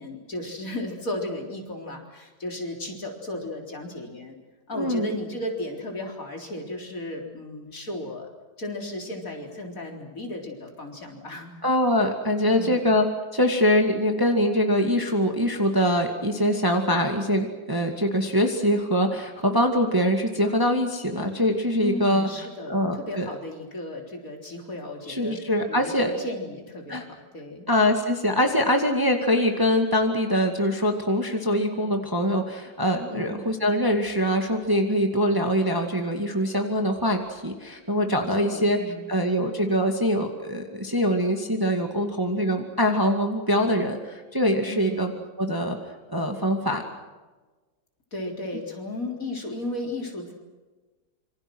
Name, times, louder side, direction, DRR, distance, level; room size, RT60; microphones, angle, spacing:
voice 1, 0.0-4.4 4.7-8.3 8.6-11.5 12.4-12.8 21.8-25.4 25.7-27.7 33.1-33.4 38.1-39.1 44.7-45.1 48.1-50.3, left 1 dB, 45° left, 1 dB, 4.4 m, -35 dB
voice 2, 4.7-5.1 11.6-13.1 13.3-22.3 22.6-23.3 25.1-26.1 26.9-27.0 27.7-38.8 39.1-45.1 45.4-45.8 46.1-46.8, equal, 10° right, 4 dB, 2.1 m, -23 dB
27.5 x 25.0 x 6.3 m, 1.2 s
omnidirectional pair, 2.1 m